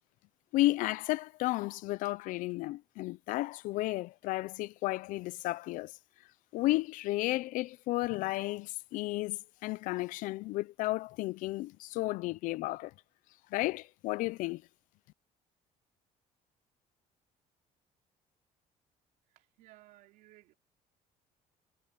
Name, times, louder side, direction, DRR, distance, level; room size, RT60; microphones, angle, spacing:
voice 1, 0.5-5.9 6.5-12.9 13.5-14.6, left 18 dB, 70° left, 0.5 m, -33 dB
voice 2, 19.3-20.6, right 16 dB, 90° right, 3.5 m, -59 dB
cardioid pair, 175°, 14 cm